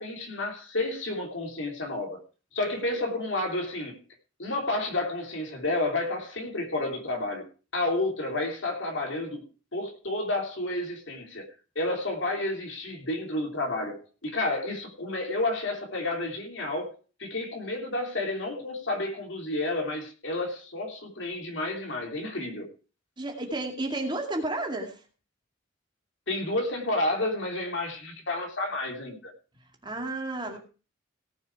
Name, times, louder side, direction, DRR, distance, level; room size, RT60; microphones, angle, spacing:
voice 1, 0.0-2.2 2.5-4.0 4.4-7.5 7.7-9.4 9.7-11.4 11.7-16.9 17.2-22.7 26.3-29.3, left 2 dB, 65° left, 2 dB, 3.2 m, -30 dB
voice 2, 23.2-25.0 29.8-30.6, right 2 dB, 25° right, 3 dB, 2.3 m, -32 dB
17.5 x 6.9 x 4.7 m, 0.35 s
head